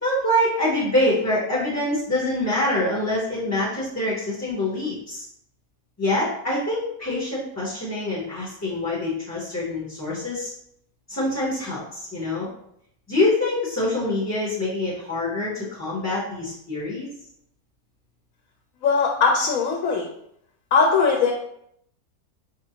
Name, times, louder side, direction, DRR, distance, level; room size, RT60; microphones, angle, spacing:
voice 1, 0.0-5.2 6.0-10.5 11.1-12.5 13.1-17.1, left 1 dB, 20° left, -7 dB, 0.5 m, -25 dB
voice 2, 18.8-20.1 20.7-21.3, left 5 dB, 70° left, 0 dB, 0.9 m, -20 dB
4.8 x 2.6 x 2.8 m, 0.74 s
omnidirectional pair, 1.7 m